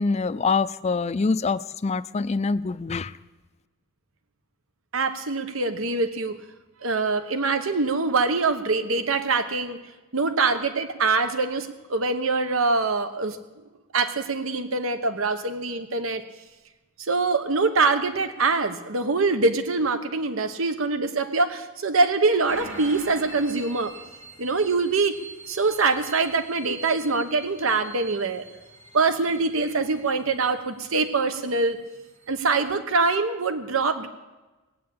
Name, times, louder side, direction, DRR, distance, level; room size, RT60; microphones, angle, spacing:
voice 1, 0.0-3.1, left 4 dB, 30° left, 16 dB, 0.4 m, -25 dB
voice 2, 4.9-6.4 6.8-9.8 10.1-13.4 13.9-16.2 17.0-23.9 24.4-25.2 25.5-28.4 28.9-31.8 32.3-34.1, right 3 dB, 85° right, 9 dB, 1.0 m, -24 dB
sound 1, 22.5-32.7, right 2 dB, 65° right, 3.8 m, -45 dB
18.5 x 8.5 x 8.6 m, 1.2 s
head